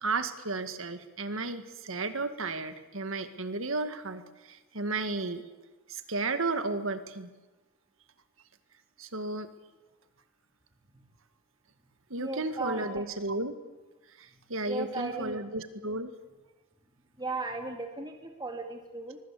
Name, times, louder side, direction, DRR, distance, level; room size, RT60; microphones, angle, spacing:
voice 1, 0.0-5.4 5.9-7.3 9.0-9.5 12.1-13.6 14.2-16.1, right 3 dB, 70° right, 10 dB, 2.0 m, -33 dB
voice 2, 12.2-13.0 14.7-15.4 17.2-19.2, right 3 dB, 20° right, 4 dB, 2.1 m, -36 dB
24.5 x 22.5 x 8.5 m, 1.1 s
head